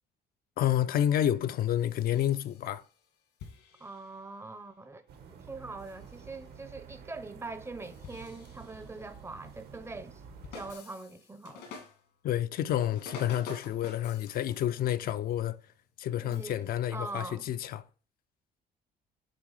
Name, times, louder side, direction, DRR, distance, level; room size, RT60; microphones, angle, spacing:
voice 1, 0.6-2.8 12.2-15.6 16.0-17.8, left 11 dB, 60° left, 0.5 m, -29 dB
sound 1, 1.8-3.2 3.4-4.6 5.8-6.4 7.7-9.2 10.3-12.2 12.9-15.9 16.3-16.6, left 5 dB, 85° left, 2.0 m, -49 dB
voice 2, 3.8-5.0 5.5-10.2 10.5-11.7 16.2-17.4, right 3 dB, 15° right, 0.6 m, -43 dB
sound 2, 5.1-10.7, right 6 dB, 75° right, 1.4 m, -50 dB
7.5 x 3.5 x 4.8 m
cardioid pair, 110°, 17 cm